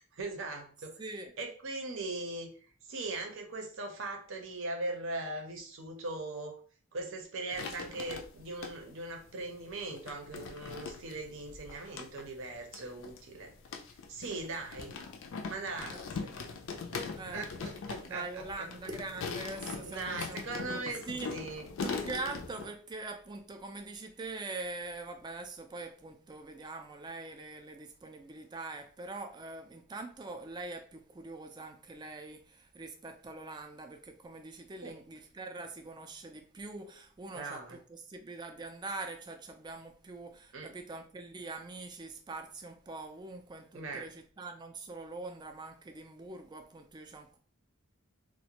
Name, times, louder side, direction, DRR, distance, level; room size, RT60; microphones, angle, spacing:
voice 1, 0.0-1.0 1.4-2.5 2.8-6.6 6.9-13.5 14.1-15.0 15.5-16.7 16.9-18.7 19.8-21.0 21.3-21.7 34.8-35.0 37.3-37.8 40.5-40.7 43.7-44.1, right 2 dB, 60° right, 0.6 m, -40 dB
voice 2, 1.0-1.3 15.9-16.0 17.1-17.5 18.1-47.4, right 3 dB, 20° right, 0.3 m, -43 dB
sound 1, 7.5-9.0 9.7-22.7, left 4 dB, 60° left, 0.4 m, -41 dB
2.5 x 2.1 x 2.8 m
head